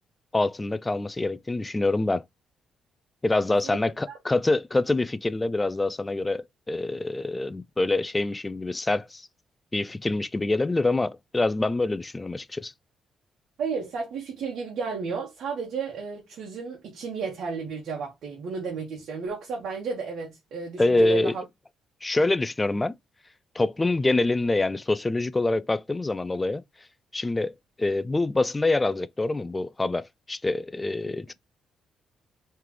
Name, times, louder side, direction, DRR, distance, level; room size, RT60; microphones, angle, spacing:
voice 1, 0.3-2.2 3.2-9.2 9.7-12.7 20.8-21.4 22.0-22.9 23.6-26.6 27.1-31.3, left 2 dB, 15° left, 0.3 m, -25 dB
voice 2, 13.6-21.4, right 5 dB, 70° right, 1.2 m, -33 dB
3.8 x 3.3 x 3.0 m
cardioid pair, 125°, 0 cm